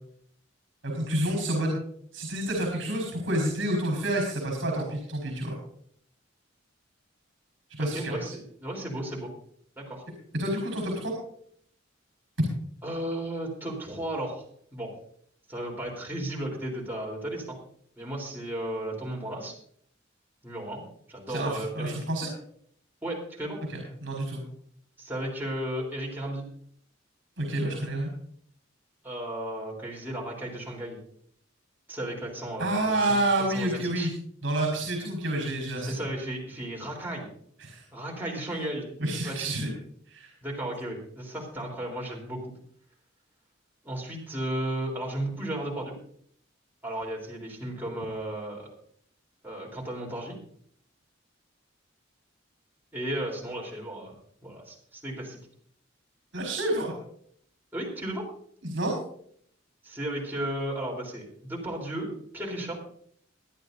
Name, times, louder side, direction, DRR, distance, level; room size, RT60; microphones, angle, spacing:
voice 1, 0.8-1.8 2.1-5.6 7.8-8.1 10.3-11.1 21.3-22.3 23.7-24.4 27.4-28.1 32.6-34.1 34.4-36.0 37.6-37.8 39.0-39.7 40.1-40.3 56.3-56.9 58.6-58.9, right 1 dB, 70° right, 0 dB, 5.0 m, -29 dB
voice 2, 7.8-9.3 9.8-10.1 12.8-14.4 14.7-14.9 15.5-17.6 18.0-19.6 20.4-20.8 21.1-21.9 23.0-23.6 25.0-26.4 29.0-31.0 31.9-33.2 33.5-34.1 35.8-37.3 37.9-38.9 39.2-39.6 40.4-42.5 43.8-46.0 46.8-48.7 49.4-50.4 52.9-54.1 54.4-55.4 57.7-58.3 59.8-62.8, right 1 dB, 10° right, -2 dB, 3.7 m, -34 dB
24.0 x 9.9 x 2.7 m, 0.62 s
head